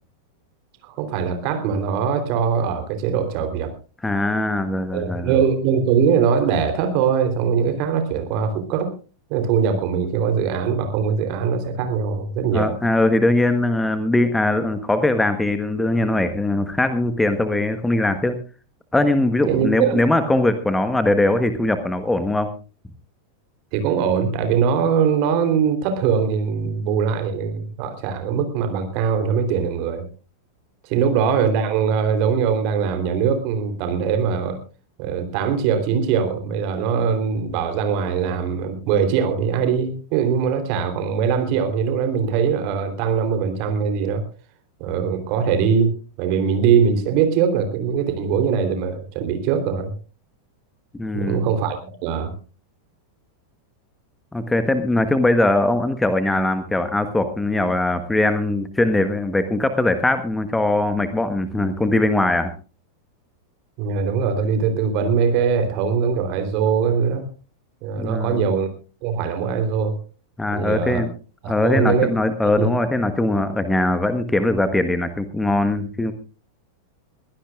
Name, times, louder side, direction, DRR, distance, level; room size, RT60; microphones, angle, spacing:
voice 1, 0.8-3.7 4.9-8.9 9.3-12.8 19.5-20.0 23.7-30.1 30.8-34.6 35.0-44.2 44.8-49.9 51.1-52.3 63.8-67.3 67.8-68.7 69.0-69.9 70.5-71.0 71.4-72.1 72.6-72.7, right 6 dB, 45° right, 8 dB, 3.4 m, -21 dB
voice 2, 4.0-5.3 12.5-18.4 18.9-22.5 51.0-51.5 54.3-62.5 68.0-68.4 70.4-71.1 71.5-76.1, left 2 dB, 5° left, 9 dB, 1.3 m, -21 dB
22.5 x 16.0 x 2.4 m, 0.34 s
figure-of-eight pair, 90°, 0 cm